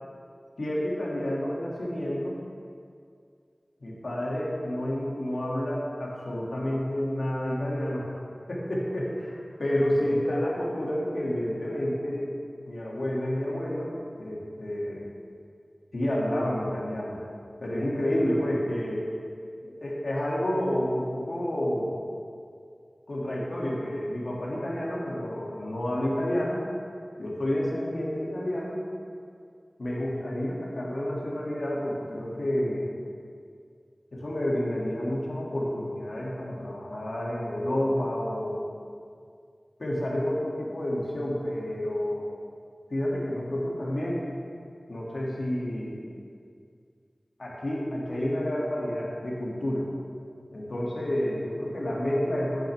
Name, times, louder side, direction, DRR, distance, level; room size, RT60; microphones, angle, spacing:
voice 1, 0.6-2.4 3.8-8.2 8.5-12.4 12.6-15.0 15.9-17.2 17.6-19.1 19.6-22.0 23.1-26.6 27.2-28.8 29.8-32.9 34.1-38.7 39.8-42.3 42.9-44.2 44.9-46.1 47.4-49.9 50.5-52.7, left 1 dB, 75° left, -5 dB, 2.7 m, -29 dB
14.5 x 10.0 x 3.7 m, 2.3 s
wide cardioid pair, 55°, 0 cm